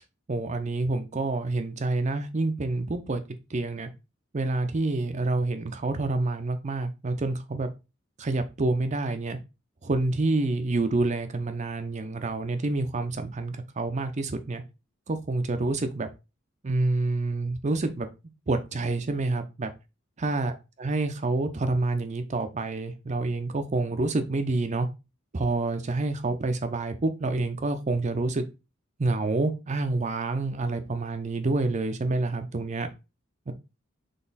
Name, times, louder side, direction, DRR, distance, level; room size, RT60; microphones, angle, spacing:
voice 1, 0.3-3.2 3.5-3.9 4.3-7.7 8.2-9.4 9.8-14.6 15.1-16.1 16.6-18.1 18.5-19.7 20.2-20.5 20.8-24.9 25.3-28.4 29.0-32.9 33.5-33.6, right 2 dB, 35° right, 8 dB, 0.5 m, -28 dB
4.0 x 3.3 x 3.9 m, 0.28 s
head